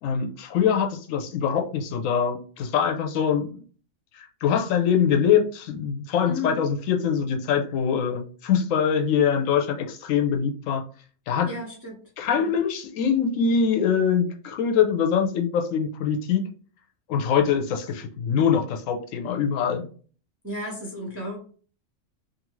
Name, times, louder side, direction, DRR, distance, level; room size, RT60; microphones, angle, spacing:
voice 1, 0.0-3.6 4.1-10.8 11.3-11.5 12.2-16.4 17.1-19.9, left 7 dB, 80° left, 4 dB, 1.0 m, -23 dB
voice 2, 6.3-6.6 11.5-12.0 12.3-12.5 20.4-21.4, left 2 dB, 15° right, -1 dB, 0.5 m, -33 dB
2.7 x 2.5 x 3.0 m, 0.41 s
omnidirectional pair, 1.4 m